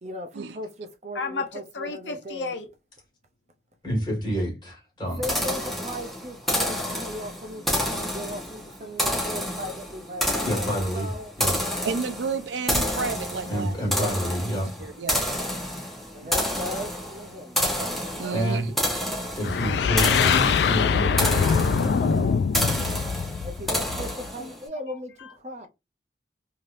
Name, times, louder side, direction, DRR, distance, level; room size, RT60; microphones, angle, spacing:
voice 1, 0.0-2.5 5.2-11.3 13.9-14.1 16.1-17.9 23.4-25.7, equal, 40° right, 0.5 m, -37 dB
voice 2, 1.1-2.6 19.5-20.1 21.4-22.7 24.4-24.5 24.9-25.3, left 4 dB, 90° left, 0.8 m, -36 dB
voice 3, 3.8-5.2 10.4-11.1 11.4-11.6 13.4-14.7 18.3-18.7 19.3-22.2, equal, 25° left, 1.7 m, -28 dB
sound 1, 5.2-24.6, equal, ahead, 0.9 m, -29 dB
voice 4, 11.8-13.8 14.8-15.2 16.2-16.3 17.7-18.7, right 5 dB, 85° right, 0.5 m, -31 dB
sound 2, 19.4-24.3, left 6 dB, 70° left, 0.3 m, -23 dB
3.3 x 2.8 x 2.5 m
head